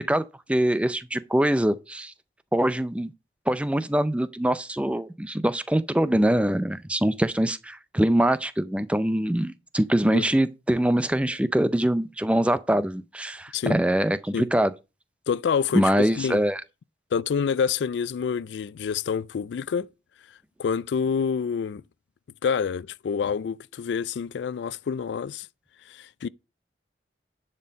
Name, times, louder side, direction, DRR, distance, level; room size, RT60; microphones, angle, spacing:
voice 1, 0.5-2.1 2.5-3.1 3.5-14.7 15.7-16.6, right 1 dB, 5° right, 0.4 m, -23 dB
voice 2, 15.3-16.4 17.1-19.9 20.3-21.8 22.4-25.5 25.9-26.3, left 6 dB, 90° left, 0.3 m, -27 dB
10.5 x 4.4 x 5.2 m
head